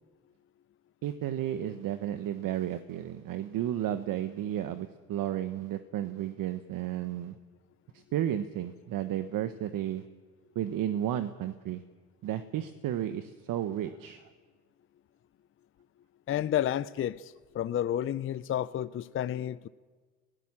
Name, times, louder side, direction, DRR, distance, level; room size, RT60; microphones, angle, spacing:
voice 1, 1.0-7.3 7.9-10.0 10.5-11.8 12.2-14.3, right 11 dB, 50° right, 1.2 m, -33 dB
voice 2, 16.3-19.7, left 11 dB, 30° left, 0.6 m, -31 dB
23.0 x 16.5 x 7.5 m
hypercardioid pair, 75°, 42 cm